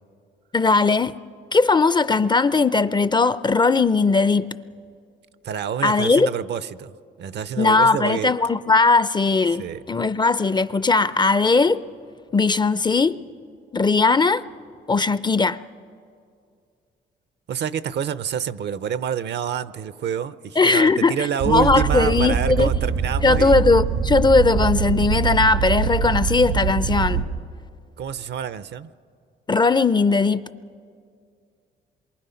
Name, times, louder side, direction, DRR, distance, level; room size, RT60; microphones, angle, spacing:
voice 1, 0.5-1.1 1.5-4.5 5.8-6.3 7.6-11.8 12.3-13.2 13.7-14.4 14.9-15.6 20.6-22.7 23.2-27.2 29.5-30.4, left 3 dB, 20° left, 0.5 m, -19 dB
voice 2, 5.4-6.9 7.2-8.4 9.6-9.8 17.5-23.7 28.0-28.9, right 8 dB, 60° right, 0.6 m, -27 dB
sound 1, 21.4-27.3, right 6 dB, 90° right, 4.2 m, -23 dB
27.0 x 23.5 x 5.7 m
cardioid pair, 90°, 20 cm